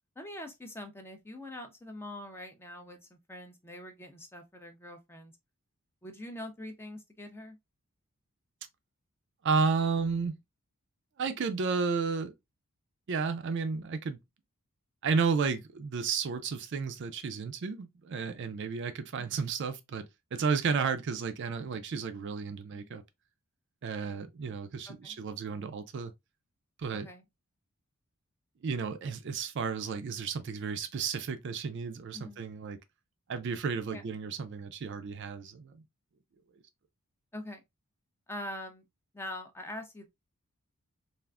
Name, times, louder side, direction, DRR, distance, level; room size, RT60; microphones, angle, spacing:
voice 1, 0.2-5.3 6.0-7.6 19.1-19.4 22.7-22.9 24.9-25.2 26.9-27.2 32.1-32.5 33.9-34.1 37.3-37.6 38.3-38.8 39.1-40.1, left 1 dB, 10° left, 0.4 m, -44 dB
voice 2, 9.4-10.3 11.2-12.3 13.1-14.2 15.0-20.1 20.3-23.0 23.8-26.1 26.8-27.1 28.6-32.8 33.3-35.8, right 5 dB, 55° right, 0.4 m, -32 dB
3.4 x 2.4 x 2.3 m
head